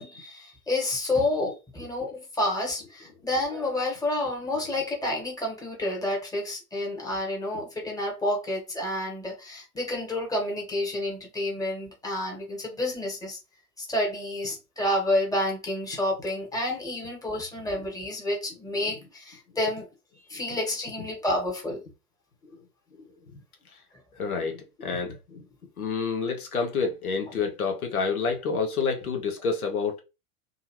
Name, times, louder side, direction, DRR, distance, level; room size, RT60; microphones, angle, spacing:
voice 1, 0.0-13.4 13.8-19.9 20.3-21.8, left 1 dB, 10° left, 1.1 m, -29 dB
voice 2, 24.2-25.4 25.8-30.0, left 5 dB, 85° left, 0.7 m, -28 dB
2.7 x 2.4 x 2.9 m
figure-of-eight pair, 90°, 43 cm